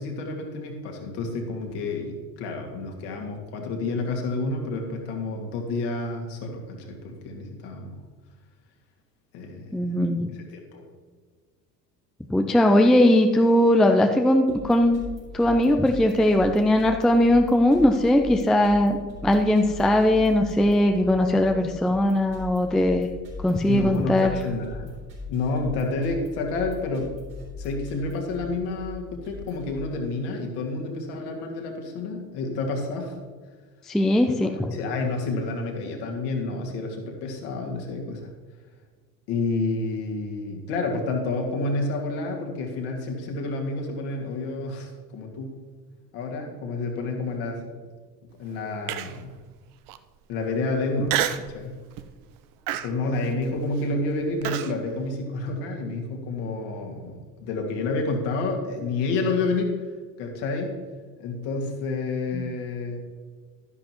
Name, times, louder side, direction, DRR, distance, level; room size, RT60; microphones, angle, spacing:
voice 1, 0.0-8.0 9.3-9.8 10.3-10.8 23.7-24.9 25.3-27.2 27.6-33.2 34.4-38.3 39.3-45.6 46.1-47.7 48.4-49.4 50.3-51.8 52.8-59.8 60.2-60.7 61.2-63.0, left 3 dB, 55° left, 1 dB, 2.3 m, -29 dB
voice 2, 9.7-10.3 12.3-15.0 15.3-19.0 19.2-23.1 23.4-24.4 33.9-34.7 62.3-62.4, left 1 dB, ahead, 5 dB, 0.4 m, -20 dB
sound 1, 14.5-29.7, left 3 dB, 85° right, 3.3 m, -40 dB
Human voice, 48.9-49.3 49.9-50.0 51.1-51.5 52.0-52.2 52.7-54.7, right 12 dB, 45° right, 0.7 m, -29 dB
12.0 x 10.5 x 3.1 m, 1.5 s
figure-of-eight pair, 70°, 49 cm